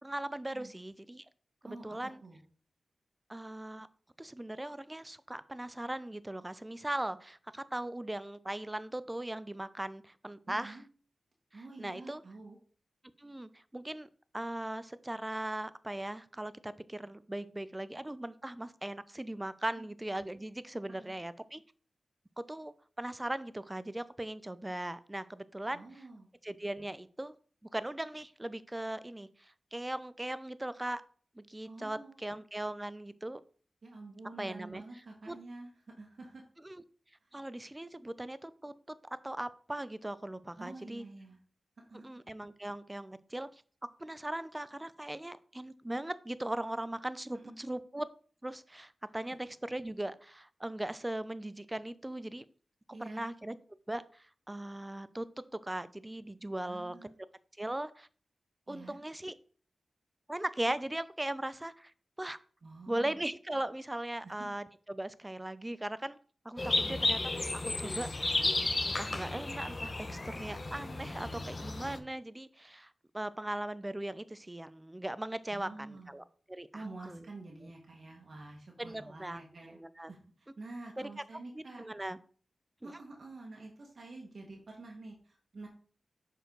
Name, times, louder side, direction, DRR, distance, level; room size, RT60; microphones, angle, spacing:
voice 1, 0.0-1.2 1.6-2.2 3.3-3.9 4.2-10.8 11.5-12.2 13.2-14.1 14.3-21.6 22.4-26.0 26.4-27.3 27.7-31.0 31.4-33.4 34.4-34.8 35.3-35.4 36.6-36.8 37.3-39.0 39.2-41.0 42.0-43.5 44.0-48.1 48.4-52.4 53.0-53.6 53.9-55.3 55.5-56.9 57.6-58.1 58.7-59.3 60.3-61.9 62.2-62.4 62.9-66.2 66.4-67.2 67.5-68.4 68.8-77.2 78.8-80.1 81.0-81.1 81.5-82.2 82.8-82.9, right 1 dB, 20° right, 16 dB, 0.5 m, -39 dB
voice 2, 1.6-2.4 10.5-10.8 11.5-12.6 19.8-19.9 21.0-21.1 25.7-26.3 31.6-32.2 33.8-35.7 36.0-36.4 37.2-37.4 40.6-41.4 41.9-42.0 47.3-47.6 52.9-53.3 56.6-57.1 58.7-59.0 62.6-63.2 64.2-64.5 66.8-67.0 75.5-76.1 76.7-81.9 82.8-85.7, right 2 dB, 60° right, 0 dB, 1.5 m, -48 dB
sound 1, 66.6-72.0, left 2 dB, 40° left, 0.8 m, -33 dB
6.5 x 4.5 x 3.9 m, 0.43 s
cardioid pair, 50°, 0 cm